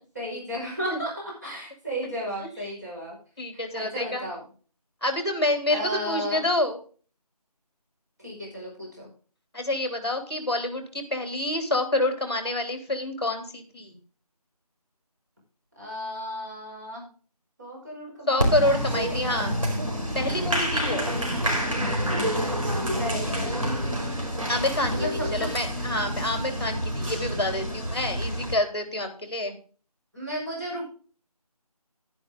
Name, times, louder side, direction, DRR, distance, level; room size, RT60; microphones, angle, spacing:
voice 1, 0.2-3.2 3.5-4.4 5.7-6.4 8.2-9.1 15.8-17.1 17.6-19.2 22.9-24.1 24.9-25.5 30.1-30.8, equal, 25° right, -5 dB, 5.3 m, -34 dB
voice 2, 3.4-4.2 5.0-6.8 9.5-14.0 18.3-19.6 20.1-21.0 24.5-29.5, left 1 dB, 40° left, 6 dB, 3.2 m, -27 dB
Applause, 18.4-28.5, equal, 55° right, 4.9 m, -28 dB
11.0 x 10.5 x 3.7 m, 0.39 s
figure-of-eight pair, 180°, 20 cm